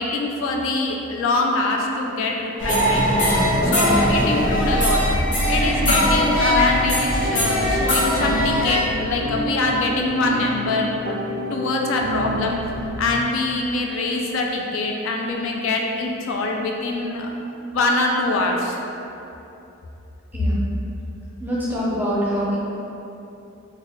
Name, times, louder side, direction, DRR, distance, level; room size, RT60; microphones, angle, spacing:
voice 1, 0.0-3.0 3.6-5.0 5.5-11.2 11.5-12.6 13.0-17.3 17.7-18.8, left 2 dB, 70° left, 1 dB, 0.3 m, -23 dB
sound 1, 2.6-8.8, equal, 35° left, 1.1 m, -20 dB
voice 2, 3.6-4.2 5.7-6.1 20.3-20.6 21.4-22.6, equal, 10° right, -7 dB, 0.5 m, -26 dB
sound 2, 5.4-13.0, right 1 dB, 60° right, 0.3 m, -29 dB
3.9 x 2.2 x 3.0 m, 2.9 s
head